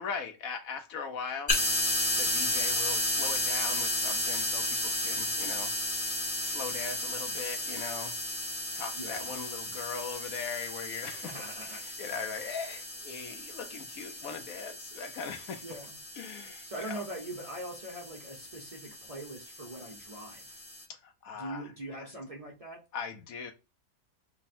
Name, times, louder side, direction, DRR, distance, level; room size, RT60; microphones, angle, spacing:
voice 1, 0.0-1.5 2.2-5.7 6.4-8.2 8.7-11.3 11.7-15.6 16.2-17.0 20.9-21.6 22.9-23.5, left 6 dB, 65° left, 0.9 m, -39 dB
sound 1, 1.5-20.8, left 1 dB, 25° left, 0.8 m, -34 dB
voice 2, 9.0-9.3 11.2-11.8 14.1-14.2 15.6-16.0 16.6-20.6 21.4-22.8, right 1 dB, 60° right, 0.3 m, -42 dB
3.4 x 2.1 x 4.2 m
omnidirectional pair, 1.9 m